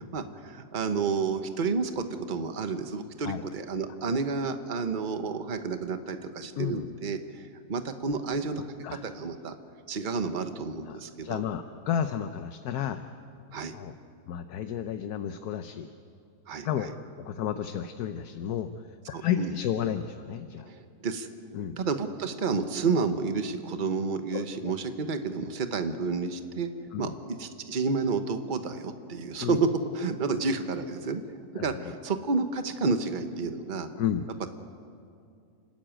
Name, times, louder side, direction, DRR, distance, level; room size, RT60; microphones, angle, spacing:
voice 1, 0.0-8.6 8.9-9.5 9.9-11.4 13.5-13.7 16.5-16.7 19.1-19.5 20.6-21.3 21.8-26.7 27.0-29.7 29.9-33.9 34.4-34.5, right 4 dB, 35° right, 8 dB, 1.1 m, -30 dB
voice 2, 6.6-6.9 8.8-9.0 10.9-13.0 13.7-13.9 14.3-15.9 16.6-18.7 19.1-20.7 21.5-21.8 24.3-24.7 26.9-27.2 29.4-29.6 31.6-31.9 34.0-34.3, left 9 dB, 75° left, 8 dB, 1.3 m, -32 dB
28.5 x 13.0 x 9.0 m, 2.4 s
omnidirectional pair, 1.7 m